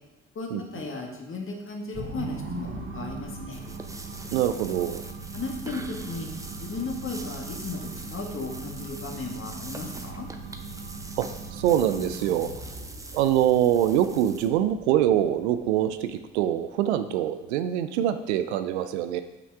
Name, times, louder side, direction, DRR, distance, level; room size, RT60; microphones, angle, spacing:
voice 1, 0.4-3.6 5.3-6.3 6.6-10.3, left 3 dB, 40° left, 0 dB, 1.9 m, -35 dB
sound 1, 1.9-16.4, right 4 dB, 40° right, 1.9 m, -40 dB
sound 2, 3.5-14.5, right 2 dB, 10° right, 0.8 m, -44 dB
voice 2, 4.3-5.0 11.2-12.5 13.1-19.2, right 11 dB, 75° right, 10 dB, 0.5 m, -24 dB
5.9 x 5.8 x 4.8 m, 1.0 s
hypercardioid pair, 50°, 33 cm